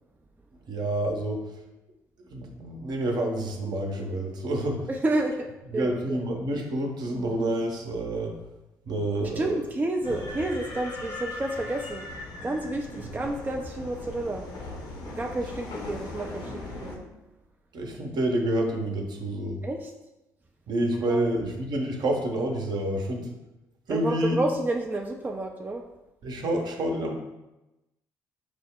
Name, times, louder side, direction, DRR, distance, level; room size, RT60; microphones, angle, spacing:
voice 1, 0.7-1.5 2.3-4.9 5.7-8.4 8.8-9.6 13.0-13.2 17.7-19.6 20.7-23.3 23.9-24.4 26.2-27.1, right 1 dB, 55° right, 2 dB, 0.8 m, -28 dB
voice 2, 4.9-5.5 5.7-6.2 9.4-14.4 15.0-17.1 19.6-19.9 21.1-21.2 23.9-25.8, right 2 dB, 20° right, 2 dB, 0.4 m, -30 dB
sound 1, 10.0-17.0, left 2 dB, 55° left, 0.8 m, -38 dB
5.0 x 2.0 x 3.5 m, 0.98 s
hypercardioid pair, 45°, 9 cm